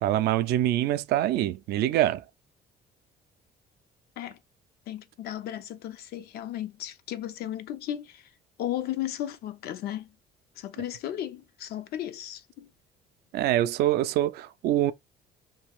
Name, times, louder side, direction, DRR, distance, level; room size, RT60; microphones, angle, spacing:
voice 1, 0.0-2.2 13.3-14.9, right 13 dB, 75° right, 0.4 m, -25 dB
voice 2, 4.9-8.3 8.6-10.1 10.6-12.7, left 12 dB, 70° left, 0.5 m, -35 dB
2.7 x 2.4 x 3.4 m
cardioid pair, 110°, 17 cm